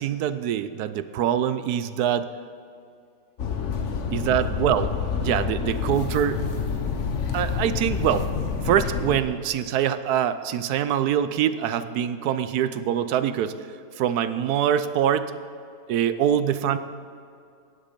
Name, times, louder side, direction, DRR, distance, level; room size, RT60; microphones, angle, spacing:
voice 1, 0.0-2.3 4.1-4.9 5.2-6.4 7.3-8.3 8.6-13.6 14.0-15.3 15.9-16.8, right 9 dB, 70° right, 12 dB, 1.0 m, -24 dB
sound 1, 3.4-9.2, left 6 dB, 50° left, 1.1 m, -28 dB
16.0 x 10.0 x 5.2 m, 2.4 s
omnidirectional pair, 2.0 m